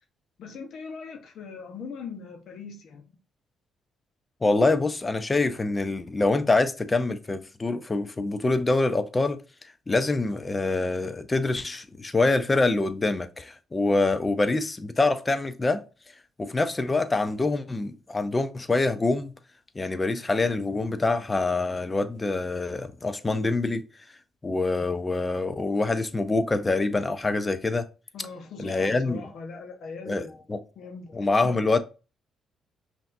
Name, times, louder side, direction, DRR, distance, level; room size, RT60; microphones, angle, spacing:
voice 1, 0.4-3.1 28.1-30.5 30.8-31.6, left 4 dB, 70° left, 1.0 m, -40 dB
voice 2, 4.4-9.4 9.9-15.8 16.4-19.3 19.8-23.8 24.4-27.9 28.6-29.2 30.1-30.6 31.1-31.8, left 3 dB, 25° left, 0.6 m, -25 dB
5.5 x 2.7 x 2.6 m
cardioid pair, 90°, 0 cm